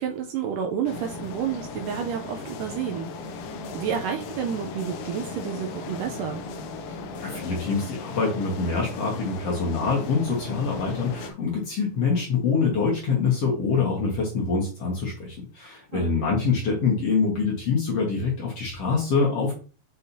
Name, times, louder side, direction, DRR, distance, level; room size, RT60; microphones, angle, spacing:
voice 1, 0.0-3.1 3.7-6.4 15.9-16.1, right 8 dB, 80° right, 4 dB, 2.0 m, -30 dB
sound 1, 0.9-11.3, left 3 dB, 80° left, 1.7 m, -37 dB
voice 2, 7.2-19.6, left 4 dB, 55° left, -2 dB, 1.9 m, -25 dB
6.5 x 5.5 x 2.7 m, 0.36 s
omnidirectional pair, 4.4 m